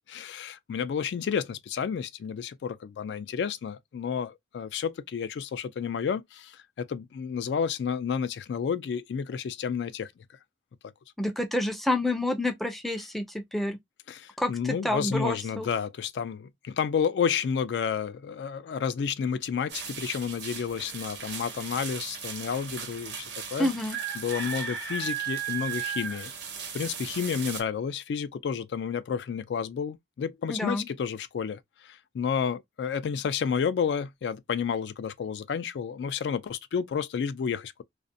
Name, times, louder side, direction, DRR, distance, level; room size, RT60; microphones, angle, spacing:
voice 1, 0.1-10.1 14.1-23.7 24.2-26.3 26.7-37.8, left 7 dB, 80° left, 0.3 m, -31 dB
voice 2, 11.2-13.8 14.4-15.7 23.6-24.0 30.5-30.9, left 1 dB, ahead, 0.3 m, -28 dB
sound 1, 19.7-27.6, right 7 dB, 90° right, 0.8 m, -36 dB
2.5 x 2.0 x 2.6 m
head